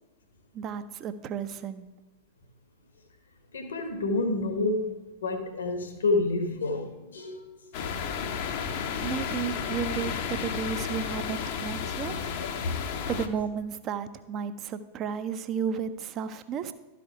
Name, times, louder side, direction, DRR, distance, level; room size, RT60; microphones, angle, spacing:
voice 1, 0.5-1.9 9.0-12.1 13.0-16.7, right 7 dB, 35° right, 11 dB, 0.6 m, -33 dB
voice 2, 3.5-7.7 8.4-8.5 12.4-12.8, left 2 dB, 70° left, 6 dB, 1.2 m, -29 dB
sound 1, 7.7-13.3, left 6 dB, 50° left, 0.7 m, -32 dB
12.5 x 5.0 x 4.7 m, 1.2 s
figure-of-eight pair, 90°, 0 cm